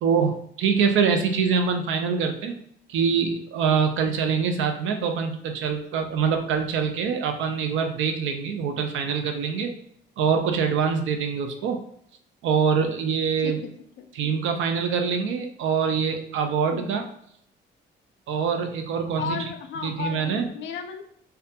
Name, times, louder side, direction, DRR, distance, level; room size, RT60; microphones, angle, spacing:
voice 1, 0.0-2.5 2.9-9.7 10.2-11.8 12.4-13.6 14.2-17.0 18.3-19.4 19.8-20.5, right 6 dB, 75° right, 5 dB, 0.4 m, -24 dB
voice 2, 13.4-13.7 14.0-14.1 16.7-17.1 19.2-21.0, left 6 dB, 65° left, 6 dB, 0.4 m, -34 dB
2.3 x 2.2 x 2.7 m, 0.70 s
cardioid pair, 90°, 20 cm